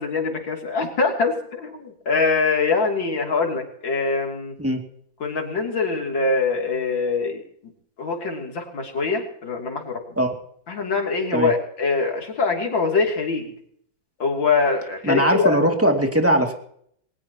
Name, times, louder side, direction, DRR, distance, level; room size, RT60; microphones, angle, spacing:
voice 1, 0.0-4.5 5.2-7.4 8.0-10.0 10.7-13.5 14.2-15.6, left 4 dB, 75° left, 2 dB, 3.7 m, -23 dB
voice 2, 15.0-16.5, right 1 dB, 5° right, 3 dB, 2.3 m, -20 dB
21.5 x 19.5 x 2.9 m, 0.66 s
omnidirectional pair, 2.1 m